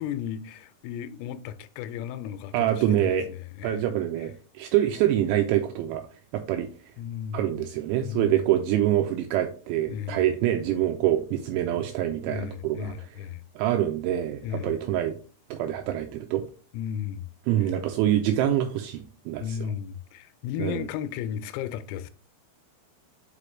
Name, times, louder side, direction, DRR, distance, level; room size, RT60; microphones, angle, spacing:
voice 1, 0.0-3.9 7.0-7.5 8.0-8.4 9.9-10.2 12.3-13.4 14.4-14.7 16.7-17.3 19.4-22.1, left 9 dB, 85° left, 3.3 m, -34 dB
voice 2, 2.5-3.3 3.6-6.0 6.3-6.7 7.3-13.1 13.6-15.2 15.5-16.4 17.5-19.6 20.6-20.9, right 12 dB, 85° right, 2.7 m, -25 dB
8.4 x 4.9 x 3.2 m
omnidirectional pair, 5.9 m